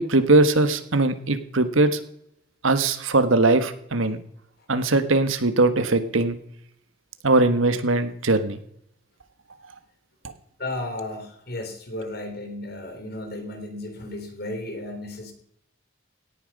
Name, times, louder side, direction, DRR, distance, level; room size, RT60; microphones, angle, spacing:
voice 1, 0.0-2.0 2.6-4.2 4.7-6.4 7.2-8.6, right 2 dB, 85° right, 10 dB, 1.5 m, -20 dB
voice 2, 10.6-15.3, left 1 dB, 50° left, 6 dB, 3.2 m, -34 dB
17.5 x 10.0 x 5.3 m, 0.75 s
head